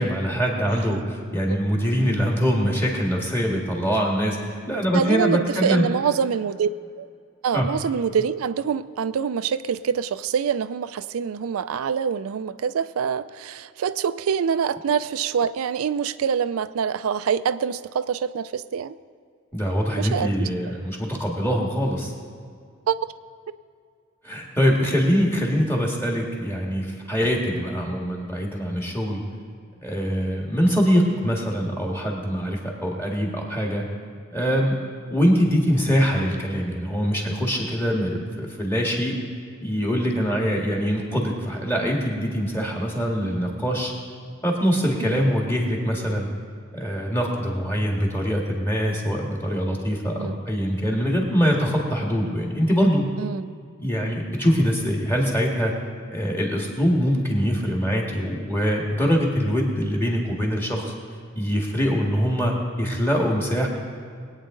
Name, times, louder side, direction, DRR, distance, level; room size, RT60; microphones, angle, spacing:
voice 1, 0.0-4.4 4.7-5.8 7.5-7.7 19.5-22.1 24.2-29.2 29.8-33.8 34.3-34.8 35.1-39.1 39.6-43.9 44.4-46.3 46.7-53.1 53.8-55.7 56.1-60.9 61.4-63.7, equal, 10° left, -1 dB, 1.8 m, -23 dB
voice 2, 4.9-6.7 7.0-7.1 7.4-19.0 20.0-20.5 22.9-23.0 45.0-45.2 50.2-50.4 53.2-53.5, right 7 dB, 85° right, 13 dB, 0.4 m, -25 dB
22.0 x 9.1 x 3.8 m, 2.2 s
head